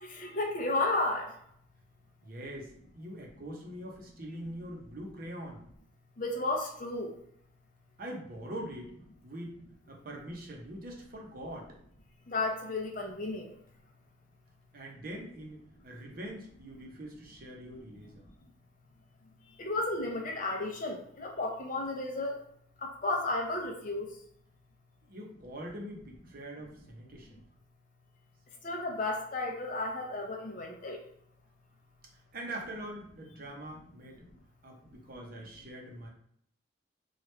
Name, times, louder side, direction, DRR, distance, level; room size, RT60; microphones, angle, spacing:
voice 1, 0.0-1.3 6.2-7.1 12.3-13.5 19.6-22.4 22.8-24.1 28.6-31.0, left 2 dB, 40° left, 1 dB, 0.5 m, -33 dB
voice 2, 2.2-5.6 8.0-8.9 9.2-9.6 9.9-11.8 14.7-18.2 25.0-27.4 32.3-34.3 34.6-36.1, right 1 dB, 45° right, 0 dB, 0.7 m, -43 dB
2.9 x 2.4 x 3.2 m, 0.69 s
head